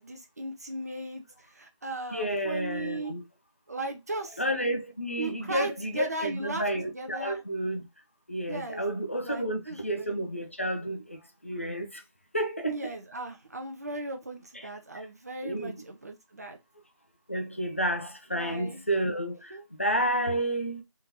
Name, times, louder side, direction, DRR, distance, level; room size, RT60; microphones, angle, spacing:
voice 1, 0.0-3.1 3.7-4.4 5.2-7.4 8.5-8.8 9.1-10.1 12.6-16.6 18.3-18.8 19.5-19.6, right 2 dB, 30° right, 0.8 m, -37 dB
voice 2, 2.1-3.2 4.4-7.8 8.3-12.0 12.3-12.9 15.4-15.7 17.3-20.8, right 1 dB, 25° left, 0.5 m, -31 dB
3.7 x 2.8 x 3.9 m
figure-of-eight pair, 170°, 16 cm